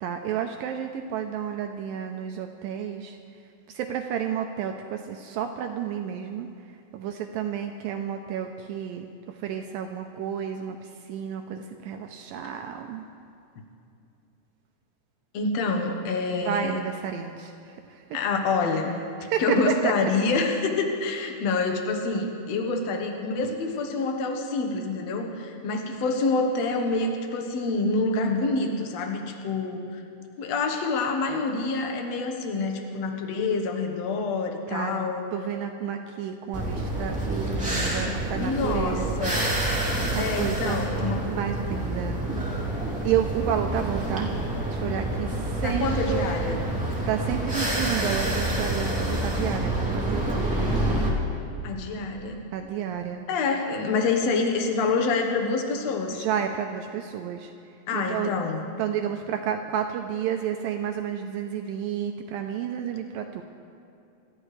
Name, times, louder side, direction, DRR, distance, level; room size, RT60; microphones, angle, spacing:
voice 1, 0.0-3.2 3.7-6.5 6.9-13.0 16.5-18.0 19.2-20.1 34.7-39.5 40.1-40.8 41.2-42.3 43.0-44.3 44.7-46.3 47.1-51.0 52.5-53.3 56.1-57.5 57.9-58.3 58.8-63.4, right 9 dB, 90° right, 4 dB, 2.0 m, -31 dB
voice 2, 15.3-16.8 18.1-19.0 19.4-30.0 30.4-35.2 38.4-39.4 40.2-41.3 45.6-46.6 51.6-52.4 53.3-56.3 57.9-58.7, left 3 dB, 85° left, 3 dB, 1.4 m, -27 dB
sound 1, 36.5-51.1, right 1 dB, 5° right, 1.7 m, -28 dB
27.5 x 14.0 x 3.3 m, 2.6 s
omnidirectional pair, 4.8 m